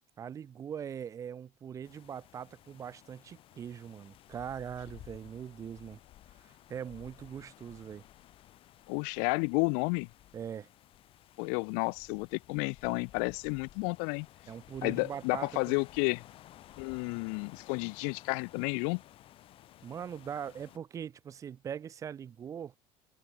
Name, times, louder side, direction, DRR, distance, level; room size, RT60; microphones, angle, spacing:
voice 1, 0.2-6.0 6.4-8.0 10.3-10.7 14.5-15.8 19.8-22.7, right 8 dB, 25° right, 0.6 m, -41 dB
sound 1, 1.8-20.8, left 13 dB, 40° left, 2.6 m, -56 dB
voice 2, 8.9-10.1 11.4-14.3 14.8-16.2 16.8-19.0, left 40 dB or more, 85° left, 0.4 m, -31 dB
cardioid pair, 180°, 14 cm